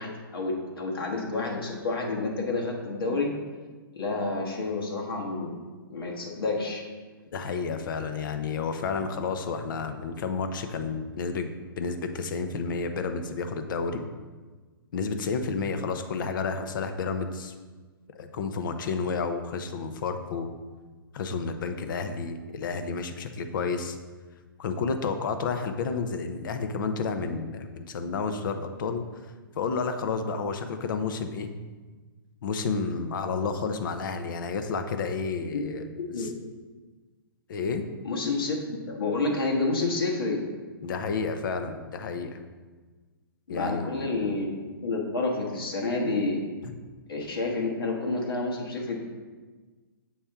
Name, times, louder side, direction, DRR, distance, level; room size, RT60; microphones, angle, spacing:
voice 1, 0.0-3.3 3.9-5.6 5.9-6.8 35.5-36.3 38.0-40.4 43.5-44.5 44.8-46.4 47.1-49.0, left 3 dB, 80° left, -1 dB, 1.3 m, -29 dB
voice 2, 7.3-11.5 11.8-14.0 14.9-17.5 18.1-20.5 21.1-24.0 24.6-29.0 29.5-31.5 32.4-35.8 36.2-36.3 37.5-37.8 40.8-42.4 43.5-44.2, left 5 dB, 60° left, 8 dB, 0.7 m, -31 dB
7.3 x 4.3 x 3.5 m, 1.4 s
hypercardioid pair, 135°, 12 cm